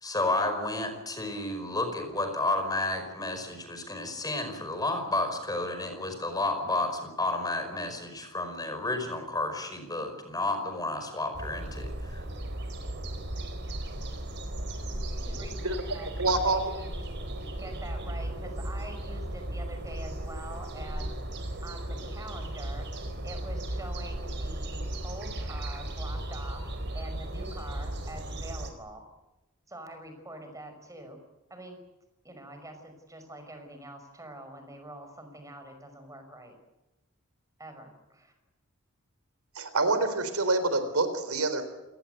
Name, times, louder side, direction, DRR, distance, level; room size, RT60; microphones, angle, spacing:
voice 1, 0.0-12.2, left 2 dB, 15° left, 6 dB, 5.2 m, -31 dB
sound 1, 11.3-28.7, right 1 dB, 50° right, 4.2 m, -36 dB
voice 2, 15.0-16.9 17.6-21.2 21.6-22.9 23.2-26.6 26.9-29.0 29.7-31.2 31.5-31.8 32.2-36.6 37.6-38.3, right 1 dB, 15° right, 7 dB, 5.5 m, -45 dB
voice 3, 16.2-16.6 39.6-41.7, right 2 dB, 75° right, 10 dB, 3.9 m, -26 dB
28.0 x 19.0 x 8.1 m, 1.0 s
head